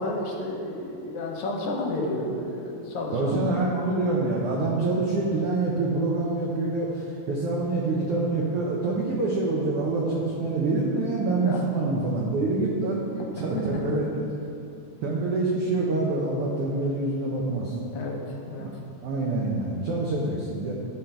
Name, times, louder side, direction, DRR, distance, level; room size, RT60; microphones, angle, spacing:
voice 1, 0.0-3.4 11.4-11.7 13.2-14.2 17.9-18.8, left 2 dB, 75° left, -1 dB, 2.3 m, -32 dB
voice 2, 3.1-13.0 13.4-14.3 15.0-17.7 18.6-18.7 19.0-20.7, right 2 dB, 75° right, -3 dB, 1.4 m, -26 dB
11.0 x 3.8 x 4.5 m, 2.6 s
omnidirectional pair, 3.4 m